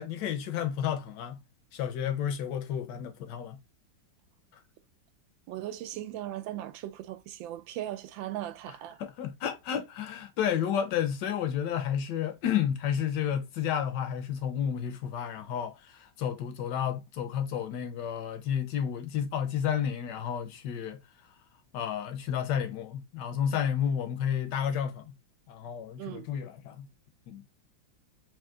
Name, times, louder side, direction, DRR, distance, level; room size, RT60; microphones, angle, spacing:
voice 1, 0.0-1.4 1.7-3.6 9.0-21.0 21.7-25.1 25.5-26.9 27.3-27.4, left 9 dB, 70° left, 1.2 m, -31 dB
voice 2, 5.5-9.0 26.0-26.3, right 13 dB, 80° right, 1.3 m, -38 dB
3.7 x 2.9 x 3.5 m
omnidirectional pair, 2.1 m